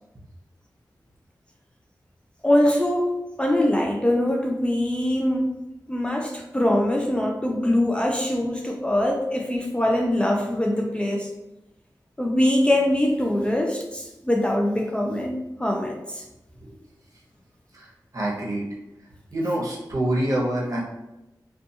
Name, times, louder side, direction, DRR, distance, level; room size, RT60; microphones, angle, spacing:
voice 1, 2.4-5.5 5.9-11.3 12.2-16.2, left 1 dB, 15° left, 0 dB, 0.4 m, -23 dB
voice 2, 17.7-18.7 19.3-20.8, right 1 dB, 50° right, -4 dB, 0.8 m, -26 dB
2.5 x 2.3 x 2.7 m, 0.96 s
cardioid pair, 55°, 7 cm